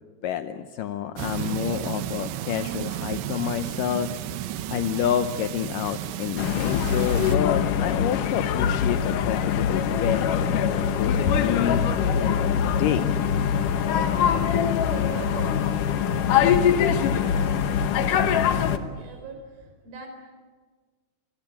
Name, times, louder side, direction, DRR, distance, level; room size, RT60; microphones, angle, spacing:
voice 1, 0.2-4.1 4.7-13.1, left 10 dB, 85° left, 9 dB, 1.9 m, -28 dB
sound 1, 1.2-7.4, right 12 dB, 90° right, 3.2 m, -33 dB
sound 2, 6.4-18.8, left 8 dB, 65° left, 2.3 m, -23 dB
voice 2, 13.9-20.1, right 4 dB, 60° right, 4 dB, 6.1 m, -41 dB
26.5 x 21.5 x 8.9 m, 1.4 s
omnidirectional pair, 5.0 m